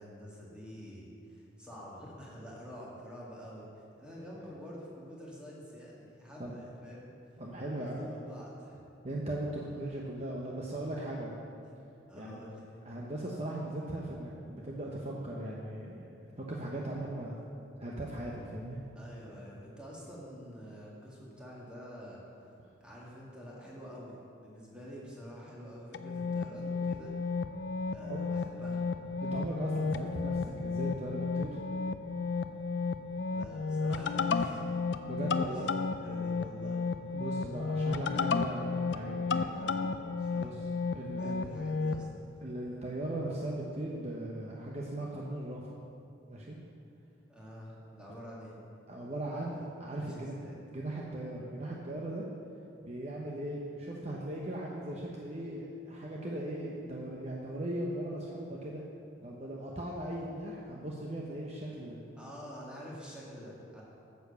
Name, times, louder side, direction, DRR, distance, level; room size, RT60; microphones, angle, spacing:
voice 1, 0.0-3.7 4.0-7.1 7.8-8.8 12.1-12.6 19.0-22.2 22.8-24.2 24.4-27.1 27.9-28.9 33.3-34.8 35.1-35.7 36.0-36.9 39.5-40.5 41.1-42.1 47.3-48.6 49.4-49.7 50.0-50.5 62.2-63.8, equal, 5° right, -5 dB, 2.1 m, -47 dB
voice 2, 7.4-8.1 9.0-11.4 12.1-12.4 12.8-16.1 16.4-17.4 17.8-18.8 22.6-22.7 28.0-28.2 29.2-31.6 35.1-35.7 37.1-39.5 40.4-40.7 40.9-41.5 42.4-45.6 46.3-46.6 48.9-50.3 50.6-52.2 52.8-58.8 59.2-62.0, right 1 dB, 35° right, -3 dB, 0.9 m, -38 dB
sound 1, 25.9-42.0, left 4 dB, 65° left, 0.4 m, -33 dB
9.8 x 7.0 x 6.8 m, 2.6 s
head